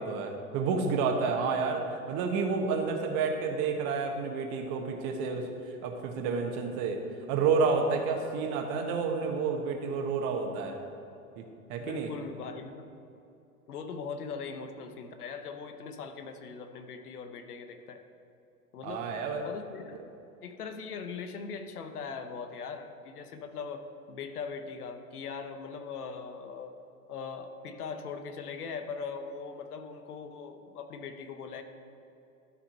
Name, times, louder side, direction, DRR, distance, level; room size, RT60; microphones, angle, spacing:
voice 1, 0.0-7.0 7.3-10.8 11.4-11.5 11.7-12.1 18.8-19.5, right 5 dB, 45° right, 3 dB, 1.4 m, -30 dB
voice 2, 11.8-12.9 13.7-18.0 18.7-19.1 19.4-20.0 20.4-26.7 27.1-31.6, left 5 dB, 75° left, 7 dB, 0.9 m, -40 dB
13.0 x 4.3 x 4.4 m, 2.7 s
hypercardioid pair, 95°, 45 cm